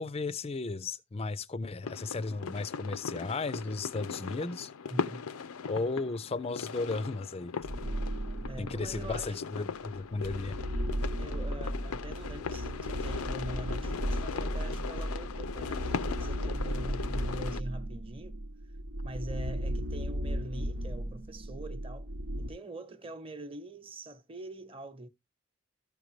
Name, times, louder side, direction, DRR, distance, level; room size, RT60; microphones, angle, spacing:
voice 1, 0.0-4.7 5.7-7.5 8.6-10.6, left 3 dB, 25° left, 0.4 m, -35 dB
sound 1, 1.8-17.6, left 5 dB, 80° left, 0.5 m, -39 dB
voice 2, 4.9-5.3 8.5-9.5 10.6-10.8 11.2-18.4 19.0-22.1 22.4-25.1, right 1 dB, 25° right, 0.9 m, -44 dB
sound 2, 7.6-9.3 9.9-22.5, equal, 80° right, 1.0 m, -35 dB
14.0 x 5.1 x 3.1 m
head